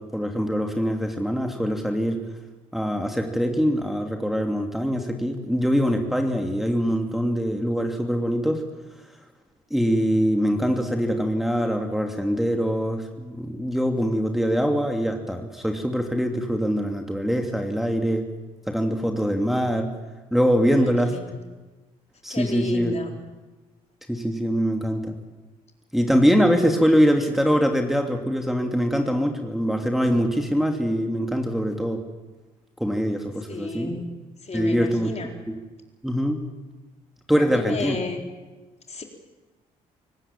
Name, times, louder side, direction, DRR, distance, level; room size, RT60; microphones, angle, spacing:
voice 1, 0.0-2.2 2.7-8.6 9.7-18.2 18.7-19.9 20.3-21.2 22.2-22.9 24.1-25.2 25.9-32.0 32.8-34.0 34.5-35.1 35.5-35.6 36.0-36.4 37.3-38.0, equal, ahead, 3 dB, 2.9 m, -23 dB
voice 2, 20.8-21.4 22.3-23.1 33.5-34.0 34.4-35.3 37.4-38.2 38.9-39.0, left 3 dB, 40° left, 3 dB, 4.1 m, -32 dB
24.0 x 19.0 x 7.4 m, 1.2 s
hypercardioid pair, 50°, 18 cm